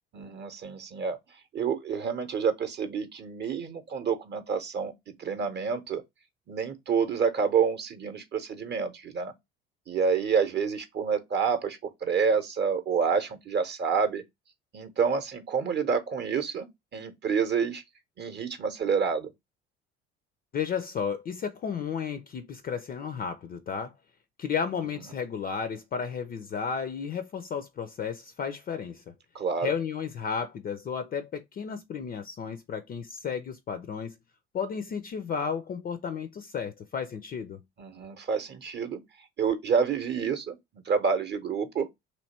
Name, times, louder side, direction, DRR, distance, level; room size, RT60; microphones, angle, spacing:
voice 1, 0.1-1.2 1.5-4.9 5.2-6.0 6.5-9.3 9.9-14.2 14.7-16.7 16.9-17.8 18.2-19.3 29.3-29.7 37.8-39.0 39.4-40.6 40.8-41.9, right 6 dB, 35° right, 0.8 m, -28 dB
voice 2, 20.5-23.9 24.4-29.0 29.6-34.2 34.5-37.6, left 6 dB, 30° left, 0.5 m, -33 dB
3.1 x 2.8 x 4.1 m
figure-of-eight pair, 55°, 30 cm